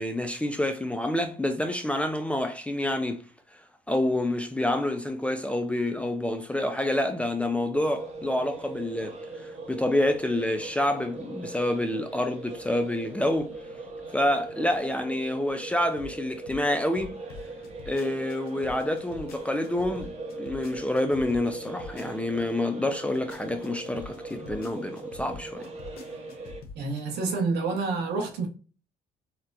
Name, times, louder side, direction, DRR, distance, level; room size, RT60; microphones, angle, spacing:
voice 1, 0.0-3.2 3.9-9.1 9.4-13.5 14.1-17.1 17.9-20.1 20.4-25.7, left 1 dB, 5° left, 0.4 m, -28 dB
sound 1, 7.7-26.6, right 2 dB, 40° right, 0.9 m, -40 dB
sound 2, 15.8-22.5 23.0-27.0, left 4 dB, 65° left, 0.8 m, -44 dB
voice 2, 26.8-28.5, right 4 dB, 75° right, 1.0 m, -28 dB
4.2 x 2.2 x 2.5 m
cardioid pair, 110°, 17 cm